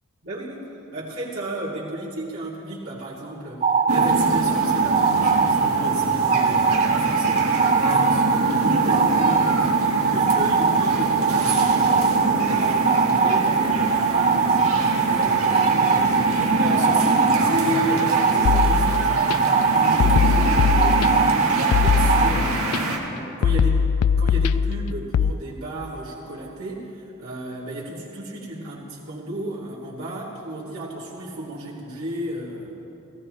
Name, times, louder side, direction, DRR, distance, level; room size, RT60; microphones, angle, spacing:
voice 1, 0.2-9.7 10.1-16.4 16.7-32.7, right 1 dB, 70° right, -8 dB, 2.9 m, -34 dB
sound 1, 3.6-22.3, right 5 dB, 35° right, 0.4 m, -21 dB
sound 2, 3.9-23.0, right 1 dB, 90° right, 1.6 m, -26 dB
sound 3, 18.4-19.4 20.0-21.3 21.7-22.8 23.4-25.3, left 6 dB, 80° left, 0.3 m, -21 dB
17.5 x 16.0 x 3.3 m, 2.9 s
head